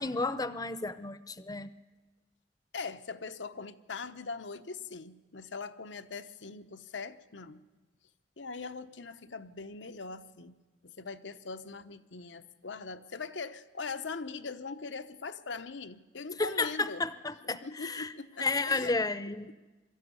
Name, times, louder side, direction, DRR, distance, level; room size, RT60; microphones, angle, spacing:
voice 1, 0.0-1.7 16.4-18.1 18.4-19.5, left 3 dB, 20° left, 14 dB, 0.7 m, -32 dB
voice 2, 2.7-7.6 8.4-10.5 10.8-17.0 17.5-19.0 19.5-19.6, left 4 dB, 85° left, 10 dB, 0.9 m, -41 dB
22.5 x 13.5 x 9.5 m, 1.2 s
head